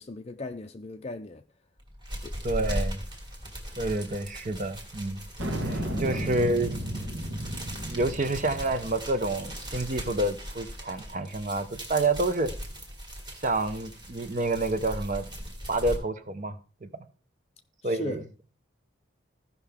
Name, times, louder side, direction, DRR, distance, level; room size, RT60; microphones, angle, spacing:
voice 1, 0.0-1.4 2.2-2.4 6.1-6.3 17.8-18.2, left 2 dB, 30° left, 0.5 m, -38 dB
sound 1, 1.8-16.0, equal, 20° right, 1.9 m, -39 dB
voice 2, 2.4-3.0 3.8-5.2 5.7-6.7 7.9-12.5 13.4-15.3 15.7-16.6 16.8-16.9 17.8-18.2, right 2 dB, 40° right, 0.7 m, -28 dB
sound 2, 5.4-10.1, equal, 80° right, 2.0 m, -34 dB
15.0 x 5.6 x 3.5 m
head